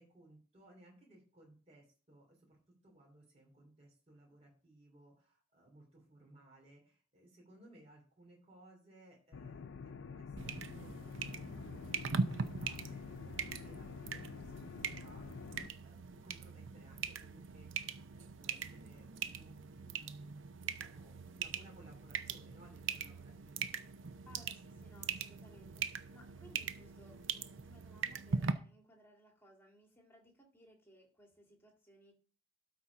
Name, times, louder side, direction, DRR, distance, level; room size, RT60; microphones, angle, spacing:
voice 1, 0.0-10.9 11.2-23.7, right 1 dB, 30° right, -2 dB, 3.1 m, -61 dB
sound 1, 9.3-15.7, left 5 dB, 60° left, 0.4 m, -48 dB
sound 2, 10.4-28.5, right 5 dB, 65° right, 0.6 m, -41 dB
voice 2, 24.3-32.1, equal, 10° left, 1 dB, 2.1 m, -62 dB
12.5 x 4.3 x 4.8 m, 0.39 s
head